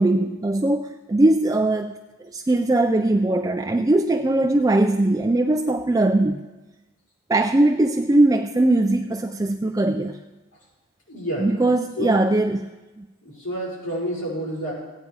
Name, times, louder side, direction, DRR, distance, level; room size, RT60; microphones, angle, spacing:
voice 1, 0.0-2.0 2.3-6.5 7.3-10.2 11.4-12.7 13.0-13.1, right 2 dB, 15° right, 4 dB, 0.3 m, -20 dB
voice 2, 11.1-11.5 12.0-12.2 13.2-14.7, equal, 80° left, -5 dB, 5.4 m, -29 dB
15.5 x 9.4 x 4.8 m, 1.1 s
head